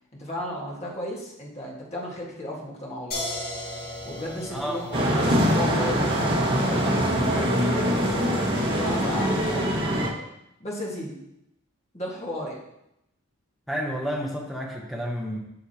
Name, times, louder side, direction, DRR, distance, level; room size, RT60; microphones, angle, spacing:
voice 1, 0.2-3.2 4.1-8.0 8.7-10.0 10.6-11.1 11.9-12.6, left 1 dB, 30° left, -4 dB, 1.7 m, -34 dB
sound 1, 3.1-8.9, left 1 dB, 45° left, 1.7 m, -38 dB
voice 2, 4.5-5.1 13.7-15.4, equal, ahead, -2 dB, 1.0 m, -31 dB
sound 2, 4.9-10.1, equal, 55° right, 1.7 m, -23 dB
8.1 x 6.5 x 2.9 m, 0.84 s
head